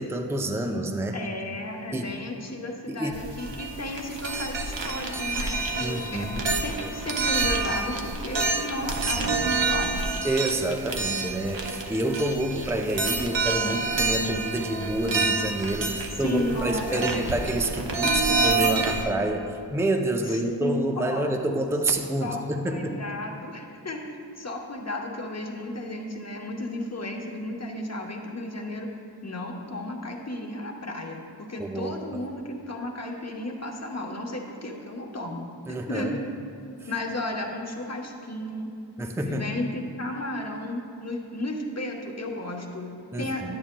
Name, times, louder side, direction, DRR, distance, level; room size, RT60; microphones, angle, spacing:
voice 1, 0.0-1.2 1.9-2.1 2.9-3.1 5.8-6.5 10.2-23.0 31.6-32.2 35.7-36.2 39.0-39.5 43.1-43.6, right 1 dB, 5° right, 4 dB, 0.5 m, -28 dB
voice 2, 1.1-6.3 6.6-10.0 16.2-17.1 20.2-21.3 22.2-28.9 29.2-36.2 36.9-38.7 39.3-43.6, left 1 dB, 35° left, 0 dB, 0.9 m, -34 dB
sound 1, 3.1-19.0, right 3 dB, 80° right, 0.8 m, -28 dB
10.5 x 8.7 x 2.2 m, 2.6 s
wide cardioid pair, 50°, 43 cm